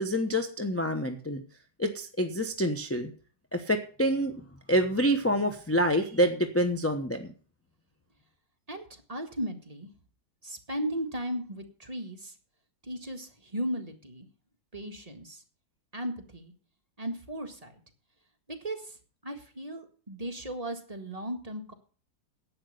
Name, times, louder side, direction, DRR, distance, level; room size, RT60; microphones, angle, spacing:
voice 1, 0.0-1.4 1.8-3.1 3.5-7.3, equal, 10° left, 4 dB, 0.7 m, -27 dB
voice 2, 8.7-9.9 10.4-12.3 12.8-14.3 14.7-15.4 15.9-16.5 17.0-17.8 18.5-19.0 19.2-21.7, equal, 20° right, 3 dB, 1.7 m, -36 dB
11.0 x 9.0 x 6.6 m, 0.40 s
omnidirectional pair, 1.9 m